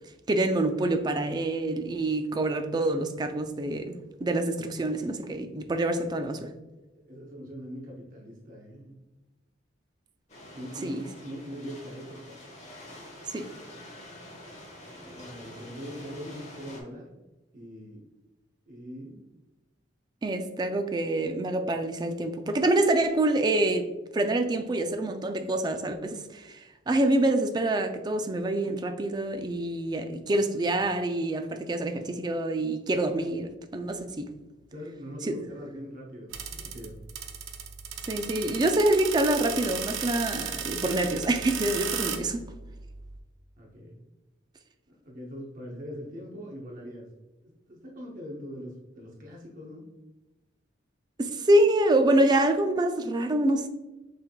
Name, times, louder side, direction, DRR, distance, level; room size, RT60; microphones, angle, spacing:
voice 1, 0.3-6.5 10.8-11.0 13.3-13.5 20.2-23.9 24.1-34.3 35.2-35.4 38.0-42.5 51.2-53.7, right 1 dB, 20° right, 0.3 m, -26 dB
voice 2, 6.9-8.9 10.5-12.4 14.9-17.1 17.5-18.1 18.7-19.2 34.7-37.0 43.6-44.0 44.9-47.1 47.4-49.9, equal, 45° right, 0.7 m, -42 dB
sound 1, 10.3-16.8, left 1 dB, 35° left, 1.1 m, -47 dB
sound 2, 36.3-43.2, right 7 dB, 80° right, 0.5 m, -35 dB
5.7 x 3.4 x 2.2 m
head